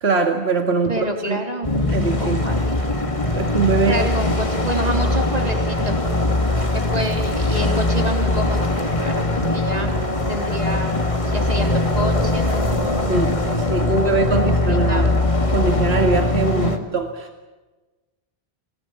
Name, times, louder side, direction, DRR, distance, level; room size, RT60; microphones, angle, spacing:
voice 1, 0.0-1.4 1.9-2.4 3.3-4.0 13.1-17.3, right 3 dB, 75° right, 4 dB, 2.3 m, -22 dB
voice 2, 0.8-3.1 3.7-6.0 6.7-9.9 10.3-15.1 16.5-16.9, right 1 dB, 40° right, 3 dB, 3.8 m, -29 dB
sound 1, 1.6-16.8, left 2 dB, 30° left, 2.2 m, -21 dB
26.0 x 19.5 x 7.2 m, 1.2 s
omnidirectional pair, 1.1 m